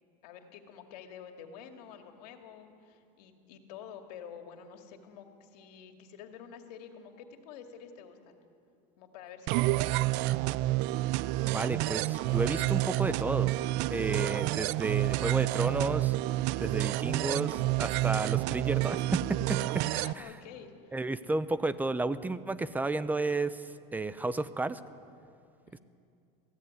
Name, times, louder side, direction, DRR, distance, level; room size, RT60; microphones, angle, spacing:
voice 1, 0.2-8.4 9.0-10.5 19.9-21.0 25.7-25.8, left 8 dB, 90° left, 4 dB, 2.4 m, -49 dB
sound 1, 9.5-20.1, right 18 dB, 60° right, 0.5 m, -29 dB
voice 2, 11.4-13.5 13.9-16.1 16.6-19.8 20.9-23.6 23.9-24.8, right 2 dB, 10° right, 14 dB, 0.7 m, -32 dB
21.5 x 16.0 x 9.7 m, 2.5 s
supercardioid pair, 135°, 20 cm